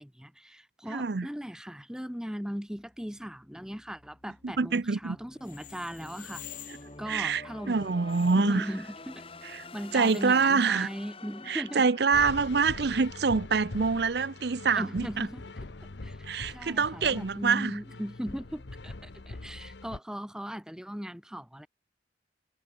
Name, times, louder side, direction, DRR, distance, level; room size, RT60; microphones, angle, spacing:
voice 1, 0.0-6.4 7.0-8.0 8.3-9.2 9.7-11.8 14.7-15.4 16.0-21.7, equal, 5° right, 0.9 m, -38 dB
voice 2, 0.9-1.3 4.6-5.2 7.1-8.7 9.5-9.6 9.9-10.9 11.5-15.3 16.3-17.7, right 5 dB, 60° right, 0.6 m, -26 dB
sound 1, 2.7-13.8, left 3 dB, 30° left, 2.4 m, -49 dB
sound 2, 5.4-11.8, left 11 dB, 45° left, 2.5 m, -51 dB
sound 3, 12.1-20.0, left 2 dB, 70° left, 1.0 m, -43 dB
head